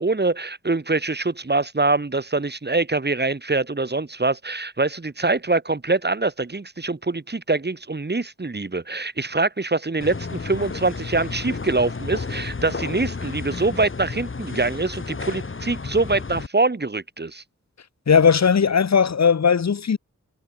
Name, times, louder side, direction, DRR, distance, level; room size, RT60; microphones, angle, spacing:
voice 1, 0.0-17.4, right 3 dB, 35° right, 3.3 m, -24 dB
sound 1, 10.0-16.5, left 4 dB, 40° left, 1.9 m, -32 dB
voice 2, 18.1-20.0, left 6 dB, 60° left, 1.3 m, -17 dB
wide cardioid pair, 85°, 30 cm